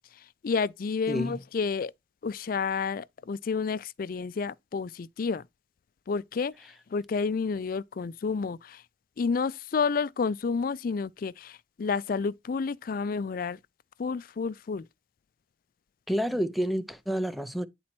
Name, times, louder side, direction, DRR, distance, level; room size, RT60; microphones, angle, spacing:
voice 1, 0.2-1.9 2.2-5.5 6.1-8.8 9.2-13.6 14.0-14.9, left 5 dB, 50° left, 0.4 m, -30 dB
voice 2, 1.1-1.4 16.1-17.7, equal, ahead, 0.7 m, -29 dB
10.0 x 4.2 x 4.3 m
head